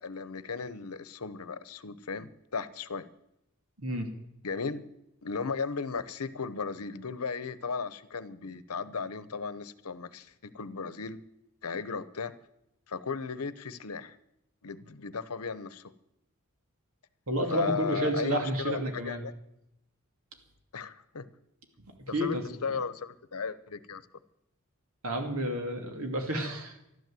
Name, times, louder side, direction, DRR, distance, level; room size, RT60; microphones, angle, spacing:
voice 1, 0.0-3.1 4.4-4.8 5.2-11.2 11.6-12.3 12.9-14.2 14.6-15.9 17.5-19.3 20.7-21.3 22.1-24.0, left 5 dB, 90° left, 14 dB, 0.9 m, -36 dB
voice 2, 17.3-19.2 22.1-22.4 25.0-26.9, right 1 dB, 70° right, 3 dB, 2.7 m, -30 dB
12.5 x 12.5 x 7.6 m, 0.83 s
head